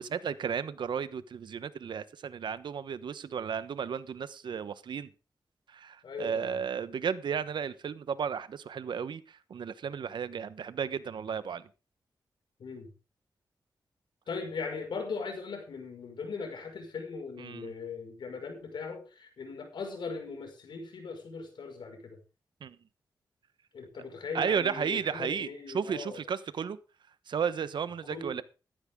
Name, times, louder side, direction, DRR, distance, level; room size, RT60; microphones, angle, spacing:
voice 1, 0.0-5.1 5.7-11.6 17.4-17.7 22.6-22.8 24.3-25.5 25.7-26.8 27.3-28.4, right 7 dB, 85° right, 14 dB, 1.2 m, -33 dB
voice 2, 6.0-6.5 12.6-12.9 14.3-22.2 23.7-26.2 28.1-28.4, left 4 dB, 90° left, 4 dB, 5.7 m, -39 dB
14.5 x 14.0 x 3.8 m, 0.32 s
wide cardioid pair, 95°, 8 cm